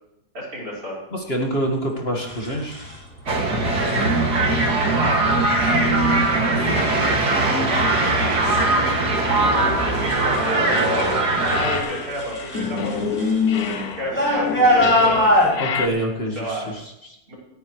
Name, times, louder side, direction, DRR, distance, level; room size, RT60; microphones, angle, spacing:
voice 1, 0.3-1.0 3.6-4.0 4.6-7.1 7.6-10.8 11.5-15.6 16.4-16.7 17.3-17.4, equal, 60° right, -4 dB, 5.6 m, -33 dB
voice 2, 1.1-2.8 15.6-17.2, right 1 dB, 40° left, 0 dB, 2.1 m, -26 dB
sound 1, 2.3-3.0 4.1-4.4 5.0-5.4 6.0-6.5 6.9-11.2 11.4-15.5, left 1 dB, 5° left, 6.7 m, -24 dB
sound 2, 3.3-11.8, right 2 dB, 80° right, 2.9 m, -20 dB
sound 3, 10.0-11.2 11.5-15.9, left 6 dB, 70° left, 1.3 m, -27 dB
28.5 x 9.7 x 3.3 m, 0.83 s
omnidirectional pair, 1.7 m